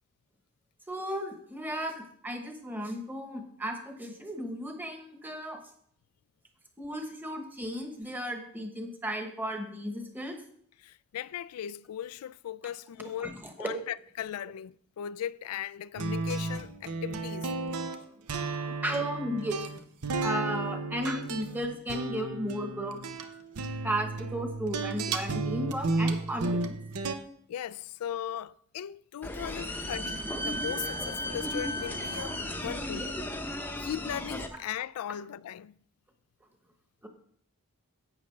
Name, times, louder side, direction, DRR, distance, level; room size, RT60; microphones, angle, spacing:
voice 1, 0.9-5.6 6.8-10.4 13.2-13.8 18.7-19.6 20.2-23.0 23.8-26.8 33.8-33.9 37.0-37.1, equal, 10° right, 1.1 m, -35 dB
voice 2, 10.8-17.5 27.5-33.2 33.8-35.7, left 10 dB, 75° left, 0.3 m, -38 dB
sound 1, 16.0-27.2, right 3 dB, 85° right, 0.8 m, -33 dB
sound 2, 29.2-34.5, equal, 10° left, 0.7 m, -35 dB
11.0 x 8.1 x 3.2 m
head